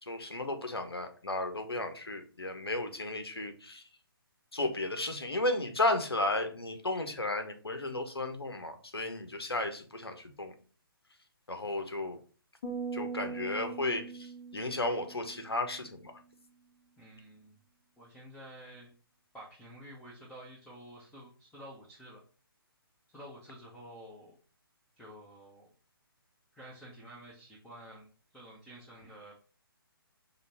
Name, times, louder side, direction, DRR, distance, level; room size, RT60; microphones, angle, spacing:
voice 1, 0.0-3.8 4.5-10.5 11.5-12.2 12.9-16.2, left 2 dB, 85° left, 7 dB, 0.9 m, -34 dB
sound 1, 12.6-16.0, right 5 dB, 50° left, 1.7 m, -41 dB
voice 2, 17.0-17.6 18.0-18.9 19.3-22.2 23.1-24.3 25.0-25.7 26.5-28.1 28.3-29.4, equal, 5° left, -5 dB, 0.9 m, -50 dB
5.1 x 2.4 x 4.2 m, 0.39 s
figure-of-eight pair, 135°, 13 cm